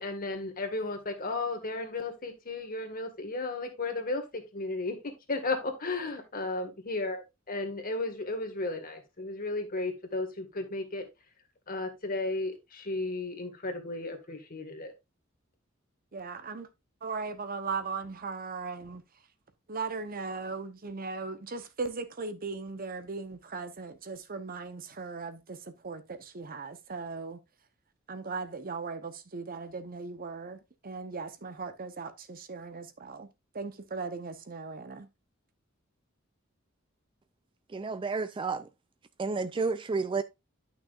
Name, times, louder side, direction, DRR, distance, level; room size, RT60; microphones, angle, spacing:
voice 1, 0.0-11.1 11.7-14.9, left 2 dB, 45° left, 1.8 m, -34 dB
voice 2, 16.1-16.7 17.0-19.0 19.7-27.4 28.1-33.3 33.5-35.1, right 4 dB, 45° right, 0.9 m, -38 dB
voice 3, 37.7-38.7 39.2-40.2, right 4 dB, 25° right, 0.3 m, -31 dB
11.0 x 6.1 x 2.5 m
head